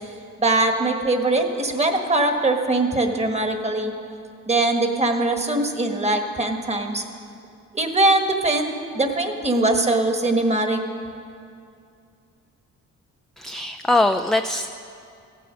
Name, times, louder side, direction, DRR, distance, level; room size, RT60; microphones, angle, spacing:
voice 1, 0.4-3.9 4.5-7.0 7.7-10.8, right 2 dB, 20° right, 5 dB, 1.4 m, -21 dB
voice 2, 13.4-14.7, left 2 dB, ahead, 6 dB, 0.3 m, -21 dB
15.0 x 9.2 x 6.3 m, 2.4 s
cardioid pair, 90°, 30 cm